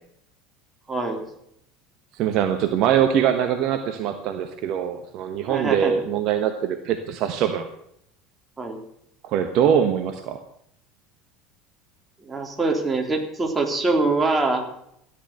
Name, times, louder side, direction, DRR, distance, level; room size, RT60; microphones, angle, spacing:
voice 1, 0.9-1.2 5.5-6.0 8.6-8.8 12.2-14.6, right 3 dB, 15° right, 2 dB, 3.7 m, -23 dB
voice 2, 2.1-7.7 9.2-10.4, right 9 dB, 50° right, 8 dB, 1.2 m, -23 dB
14.0 x 9.9 x 7.9 m, 0.75 s
figure-of-eight pair, 70°, 0 cm